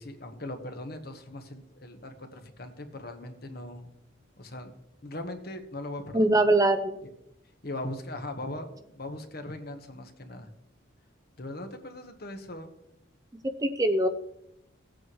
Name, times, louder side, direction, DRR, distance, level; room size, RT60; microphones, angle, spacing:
voice 1, 0.0-3.9 4.4-4.7 5.0-6.4 7.6-10.5 11.4-12.7, left 1 dB, 50° left, 6 dB, 1.3 m, -39 dB
voice 2, 6.1-7.0 13.6-14.1, right 1 dB, 20° right, 8 dB, 0.6 m, -22 dB
17.0 x 8.5 x 3.2 m, 0.80 s
head